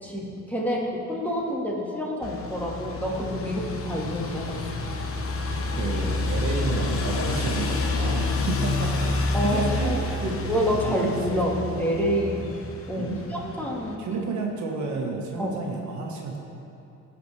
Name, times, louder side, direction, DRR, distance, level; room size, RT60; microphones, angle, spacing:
voice 1, 0.0-4.6 9.3-12.4 12.9-14.2 15.4-15.5, equal, 5° left, -3 dB, 1.7 m, -28 dB
sound 1, 2.2-13.9, left 2 dB, 45° left, 1.0 m, -29 dB
voice 2, 5.8-9.2 9.4-10.4 10.9-11.5 13.0-13.3 14.0-16.4, right 4 dB, 75° right, 0 dB, 1.4 m, -31 dB
15.0 x 5.9 x 3.3 m, 2.7 s
cardioid pair, 90°, 30 cm